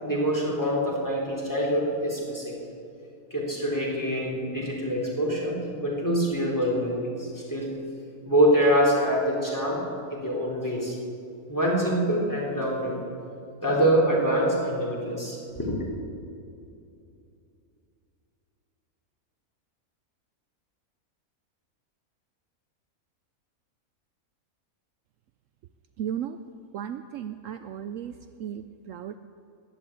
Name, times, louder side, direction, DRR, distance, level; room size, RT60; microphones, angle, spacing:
voice 1, 0.0-2.5 3.3-7.7 8.3-9.8 10.1-11.0 11.5-13.0 13.6-15.8, equal, 10° left, -3 dB, 3.6 m, -25 dB
voice 2, 26.0-26.4 26.7-29.2, right 9 dB, 70° right, 9 dB, 0.9 m, -35 dB
15.5 x 11.0 x 8.6 m, 2.6 s
omnidirectional pair, 1.5 m